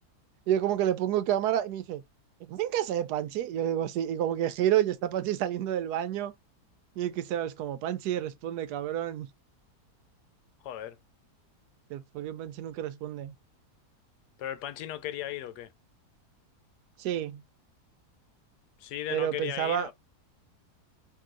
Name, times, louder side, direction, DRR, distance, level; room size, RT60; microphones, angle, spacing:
voice 1, 0.5-2.0 2.5-6.3 7.0-9.3 11.9-13.3 17.0-17.4 19.1-19.9, right 11 dB, 80° right, 1.1 m, -29 dB
voice 2, 10.6-11.0 14.4-15.7 18.8-19.9, left 12 dB, 85° left, 1.2 m, -36 dB
3.8 x 2.6 x 3.7 m
omnidirectional pair, 1.7 m